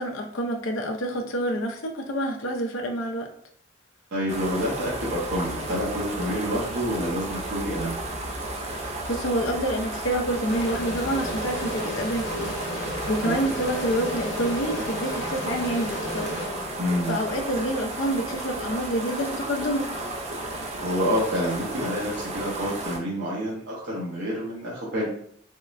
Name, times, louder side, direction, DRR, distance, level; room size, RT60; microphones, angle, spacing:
voice 1, 0.0-3.3 8.7-16.4 17.1-20.0, right 1 dB, 80° left, 2 dB, 0.5 m, -28 dB
voice 2, 4.1-8.0 13.2-13.4 16.8-17.2 20.8-25.1, equal, 65° right, -6 dB, 0.8 m, -28 dB
sound 1, 4.3-23.0, right 2 dB, 35° right, 0.4 m, -33 dB
sound 2, 10.4-17.1, left 1 dB, 60° left, 1.0 m, -33 dB
3.5 x 2.1 x 2.4 m, 0.64 s
head